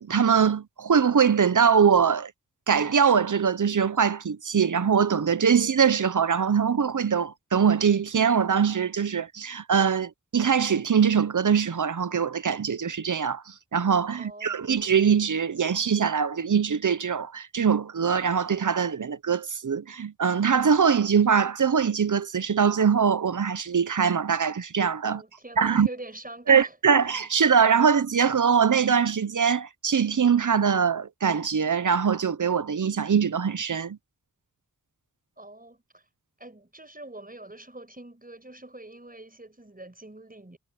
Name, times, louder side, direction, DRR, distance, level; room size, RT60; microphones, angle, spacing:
voice 1, 0.0-2.3 2.7-25.2 25.6-25.9 26.5-34.0, right 6 dB, 65° right, 0.9 m, -22 dB
voice 2, 14.1-14.7 25.1-26.7 35.4-36.0 36.4-40.6, right 2 dB, 25° right, 5.8 m, -44 dB
wide cardioid pair, 55°, 33 cm